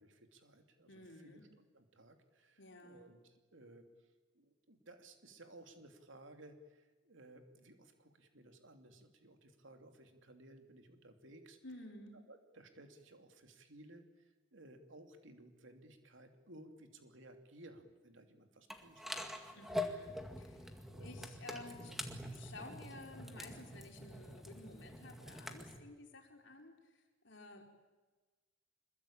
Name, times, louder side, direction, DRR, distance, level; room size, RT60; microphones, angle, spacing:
voice 1, 0.0-4.1 4.3-11.6 12.3-19.2 19.5-19.7 20.9-21.1 21.9-22.0, right 1 dB, 70° right, 6 dB, 2.9 m, -58 dB
voice 2, 0.9-1.5 2.6-3.1 11.6-12.2 19.5-21.9 22.3-27.6, left 2 dB, 65° left, 3 dB, 4.5 m, -53 dB
sound 1, 18.7-25.8, left 1 dB, ahead, 2.0 m, -45 dB
26.0 x 22.0 x 8.9 m, 1.2 s
head